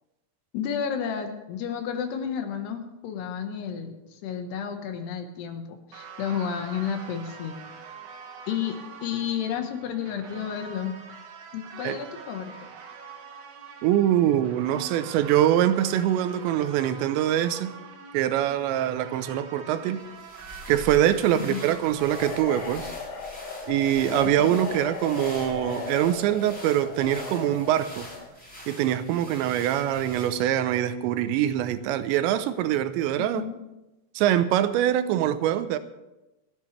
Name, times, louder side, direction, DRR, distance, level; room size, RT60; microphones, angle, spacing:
voice 1, 0.5-7.6 8.5-11.0 11.5-12.5 21.3-21.6 24.2-24.6 33.2-33.6, left 8 dB, 70° left, 3.3 m, -31 dB
sound 1, 5.9-22.7, right 5 dB, 60° right, 2.3 m, -45 dB
voice 2, 13.8-17.7 18.1-20.0 20.7-22.9 23.7-28.1 28.7-33.4 34.2-35.8, right 11 dB, 90° right, 3.0 m, -24 dB
sound 2, 20.0-30.6, left 1 dB, 15° left, 6.8 m, -44 dB
sound 3, 22.0-28.3, left 5 dB, 50° left, 2.9 m, -36 dB
28.0 x 11.0 x 3.3 m
omnidirectional pair, 5.1 m